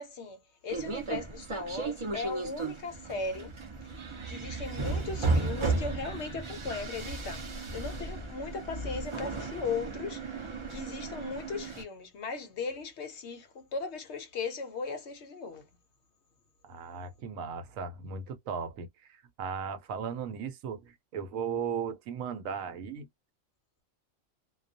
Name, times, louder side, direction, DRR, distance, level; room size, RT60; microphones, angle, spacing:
voice 1, 0.0-3.6 4.2-7.5 7.7-15.7, left 4 dB, 65° left, 0.8 m, -38 dB
sound 1, 0.7-11.8, right 3 dB, 40° right, 0.4 m, -34 dB
voice 2, 16.6-23.1, right 6 dB, 75° right, 1.0 m, -37 dB
2.3 x 2.2 x 2.5 m
omnidirectional pair, 1.4 m